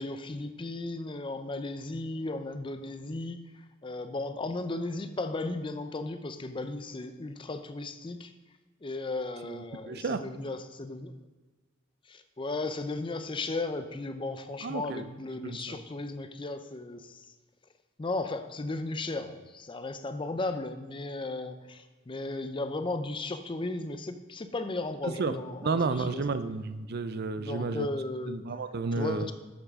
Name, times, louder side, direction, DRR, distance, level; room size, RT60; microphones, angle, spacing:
voice 1, 0.0-3.4 3.8-8.3 8.8-11.1 12.1-17.3 18.0-26.2 27.4-28.4 29.0-29.3, left 2 dB, 25° left, 9 dB, 0.5 m, -35 dB
voice 2, 9.5-10.2 14.6-15.1 15.4-15.8 25.0-25.3 25.6-27.9 28.3-29.3, right 4 dB, 50° right, 11 dB, 0.5 m, -32 dB
8.2 x 7.3 x 3.6 m, 1.3 s
head